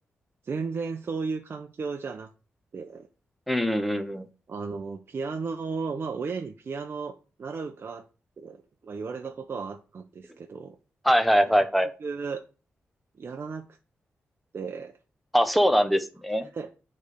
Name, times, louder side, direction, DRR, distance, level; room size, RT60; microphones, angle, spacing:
voice 1, 0.4-2.3 2.7-3.1 4.5-8.0 8.4-10.8 12.0-12.4 13.2-13.7 14.5-14.9 16.4-16.7, right 4 dB, 50° right, 0.6 m, -34 dB
voice 2, 3.5-4.3 11.0-11.9 15.3-16.5, equal, ahead, 0.8 m, -22 dB
8.9 x 3.3 x 5.0 m
cardioid pair, 95°, 5 cm